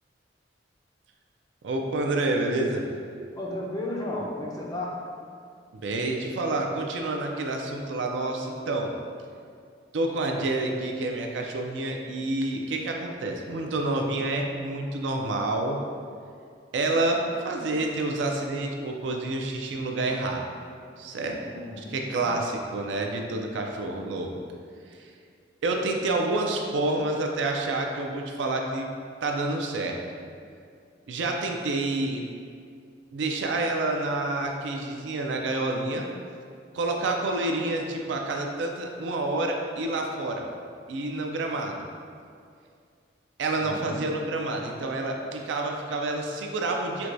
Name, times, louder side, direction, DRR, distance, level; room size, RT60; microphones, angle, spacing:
voice 1, 1.6-2.9 5.7-8.9 9.9-15.8 16.7-20.4 21.0-21.4 21.7-24.3 25.6-28.9 29.2-30.0 31.1-32.3 33.1-36.1 36.7-40.5 40.9-41.9 43.4-47.1, right 2 dB, 75° right, 2 dB, 0.4 m, -28 dB
voice 2, 3.4-5.0 21.4-22.4 43.6-44.0, left 1 dB, 20° left, -2 dB, 0.4 m, -34 dB
4.5 x 2.2 x 2.5 m, 2.3 s
head